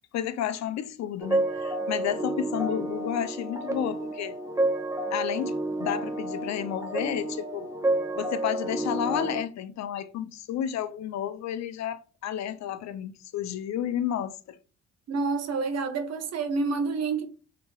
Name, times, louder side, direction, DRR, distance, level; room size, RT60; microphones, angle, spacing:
voice 1, 0.1-4.4 5.1-7.7 8.2-14.6, left 10 dB, 65° left, 0.5 m, -31 dB
sound 1, 1.2-9.4, right 1 dB, 10° right, 0.5 m, -30 dB
voice 2, 15.1-17.3, right 4 dB, 60° right, 0.7 m, -28 dB
2.9 x 2.8 x 2.2 m
cardioid pair, 90°, 30 cm